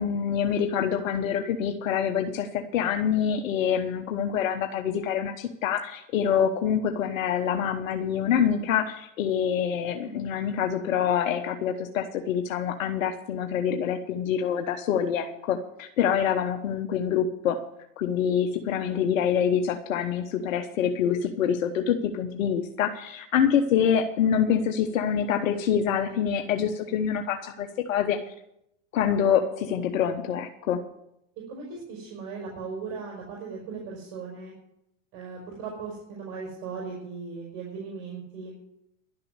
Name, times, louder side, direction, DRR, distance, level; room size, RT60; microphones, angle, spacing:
voice 1, 0.0-17.6 18.0-28.2 28.9-30.9, left 8 dB, 85° left, 6 dB, 1.1 m, -26 dB
voice 2, 10.0-10.4 26.8-27.1 31.5-34.5 35.1-38.5, right 5 dB, 65° right, -2 dB, 5.2 m, -38 dB
12.0 x 6.8 x 9.6 m, 0.80 s
hypercardioid pair, 100°, 39 cm